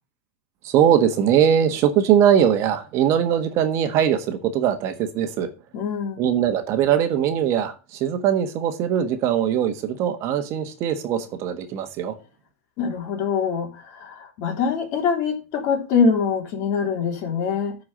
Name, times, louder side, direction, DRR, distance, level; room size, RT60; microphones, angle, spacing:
voice 1, 0.6-5.5 6.2-12.1, right 9 dB, 40° right, 1.5 m, -21 dB
voice 2, 5.7-6.2 12.8-17.8, left 5 dB, 45° left, 3.4 m, -24 dB
9.6 x 4.8 x 7.7 m
hypercardioid pair, 115°, 8 cm